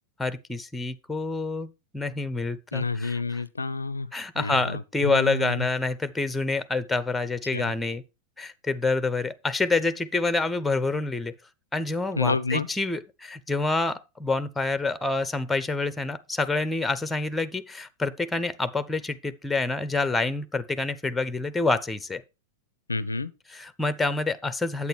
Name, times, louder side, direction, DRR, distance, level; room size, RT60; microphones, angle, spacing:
voice 1, 0.2-3.4 4.1-8.0 8.4-11.3 11.7-22.2 23.5-24.9, left 3 dB, 10° left, 0.8 m, -27 dB
voice 2, 2.7-4.1 4.4-5.6 7.5-7.7 12.2-12.7 22.9-23.3, left 3 dB, 80° left, 0.5 m, -29 dB
9.2 x 8.5 x 3.3 m
figure-of-eight pair, 90°, 0 cm